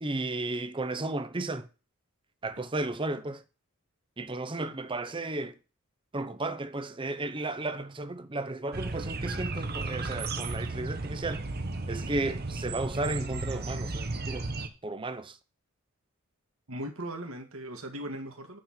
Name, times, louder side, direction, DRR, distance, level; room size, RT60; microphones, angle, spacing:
voice 1, 0.0-1.7 2.4-3.4 4.2-5.6 6.1-11.5 11.9-14.5 14.8-15.4, right 2 dB, 25° right, 0.7 m, -34 dB
sound 1, 8.7-14.7, right 3 dB, 45° right, 1.1 m, -34 dB
voice 2, 16.7-18.6, right 1 dB, 65° right, 2.1 m, -38 dB
8.9 x 4.5 x 7.3 m
head